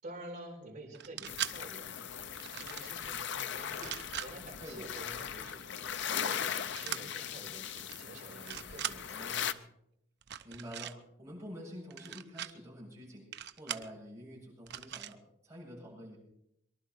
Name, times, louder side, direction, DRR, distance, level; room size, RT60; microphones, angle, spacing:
voice 1, 0.0-9.4, right 1 dB, 40° right, -4 dB, 4.7 m, -49 dB
sound 1, 0.9-1.5 2.4-2.9 3.7-4.3 6.8-7.0 7.7-8.0 8.3-9.0 10.2-10.9 11.9-12.5 13.3-13.9 14.7-15.1, right 10 dB, 55° right, 0.6 m, -40 dB
sound 2, 1.3-9.5, left 8 dB, 60° left, 0.6 m, -39 dB
voice 2, 9.1-9.6 10.4-13.2 13.6-15.2 15.4-16.2, equal, 15° right, -6 dB, 7.9 m, -47 dB
23.0 x 11.5 x 4.7 m, 0.77 s
head